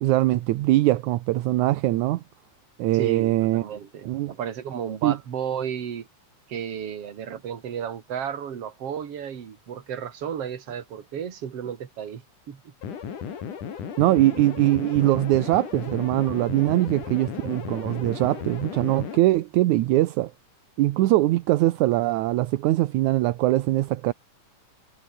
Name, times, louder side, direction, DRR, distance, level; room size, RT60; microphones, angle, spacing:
voice 1, 0.0-2.2 2.8-3.6 4.1-4.3 5.0-5.2 14.0-20.3 20.8-24.1, right 16 dB, 75° right, 2.2 m, -22 dB
voice 2, 2.9-6.1 6.5-12.2 12.5-12.7 17.9-18.2, right 8 dB, 50° right, 3.1 m, -33 dB
sound 1, 12.8-19.2, left 7 dB, 85° left, 4.4 m, -35 dB
omnidirectional pair, 3.6 m